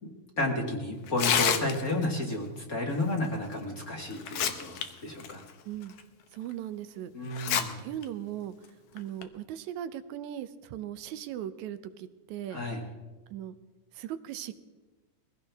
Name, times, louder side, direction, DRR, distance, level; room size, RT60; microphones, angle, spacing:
voice 1, 0.0-5.4 7.1-7.8 12.5-12.8, left 2 dB, 35° left, 0 dB, 1.8 m, -32 dB
Tearing, 1.1-2.1 3.5-3.6 4.1-4.8 5.2-5.3 6.0-6.1 7.3-7.6 8.0-8.1 9.0-9.2, left 8 dB, 65° left, 1.7 m, -27 dB
voice 2, 5.7-6.0 6.3-7.1 7.8-8.6 8.9-12.6 13.3-13.6 13.9-14.6, right 11 dB, 80° right, 11 dB, 2.0 m, -38 dB
21.5 x 16.0 x 3.5 m, 1.2 s
omnidirectional pair, 3.4 m